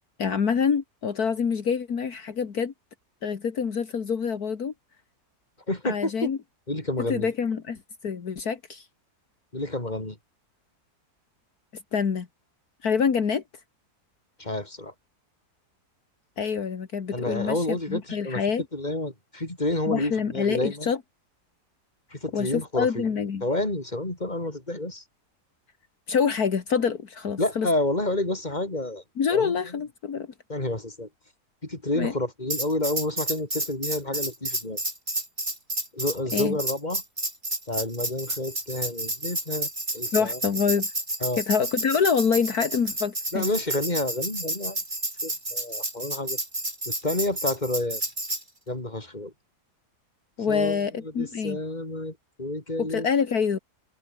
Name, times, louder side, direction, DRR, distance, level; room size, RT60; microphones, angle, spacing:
voice 1, 0.2-2.7 3.2-4.7 5.8-6.4 7.1-7.8 8.0-8.9 11.9-12.3 12.8-13.4 16.4-18.6 19.9-21.0 22.3-23.4 26.1-27.7 29.2-30.3 32.0-32.1 36.3-36.6 40.1-40.9 41.4-43.5 50.4-51.6 52.8-53.6, left 6 dB, 70° left, 2.3 m, -26 dB
voice 2, 5.7-6.3 6.7-7.3 9.5-10.2 14.4-14.9 17.1-18.5 18.7-20.9 22.1-23.1 23.4-25.0 27.4-29.0 29.3-29.6 30.5-31.1 31.6-34.8 35.9-37.0 37.7-40.4 41.2-41.4 43.3-44.8 45.2-46.4 46.9-48.0 48.7-49.3 50.4-53.1, left 2 dB, 25° left, 4.9 m, -29 dB
Tambourine, 32.5-48.4, right 1 dB, 30° right, 6.0 m, -30 dB
omnidirectional pair, 1.7 m